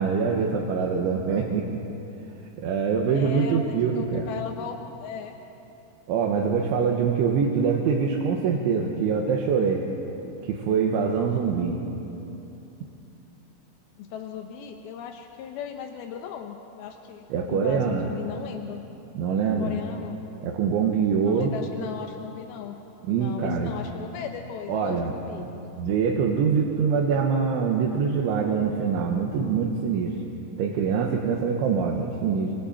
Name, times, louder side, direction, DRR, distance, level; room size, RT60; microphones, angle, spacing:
voice 1, 0.0-1.8 2.6-4.3 6.1-9.8 10.4-11.8 17.3-18.1 19.2-19.8 20.4-21.5 23.0-23.7 24.7-25.1 25.4-25.5 25.8-30.2 30.6-32.5, right 6 dB, 75° right, -1 dB, 3.7 m, -24 dB
voice 2, 3.1-5.4 14.0-18.9 19.6-20.2 21.2-22.8 23.1-25.8, left 7 dB, 80° left, 4 dB, 2.2 m, -37 dB
29.5 x 25.0 x 4.4 m, 2.9 s
omnidirectional pair, 5.5 m